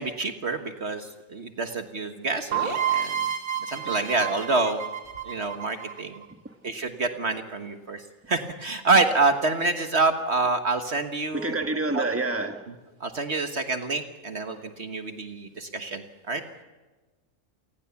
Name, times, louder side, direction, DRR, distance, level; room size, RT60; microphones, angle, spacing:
voice 1, 0.0-3.2 3.7-4.8 5.2-6.1 6.6-8.0 8.3-11.5 11.9-12.0 13.0-16.4, right 3 dB, 50° right, 6 dB, 1.6 m, -27 dB
sound 1, 2.5-6.3, right 9 dB, 80° right, 3.6 m, -29 dB
voice 2, 11.3-12.7, right 2 dB, 10° right, 5 dB, 1.8 m, -28 dB
28.5 x 19.0 x 7.1 m, 1.2 s
omnidirectional pair, 1.5 m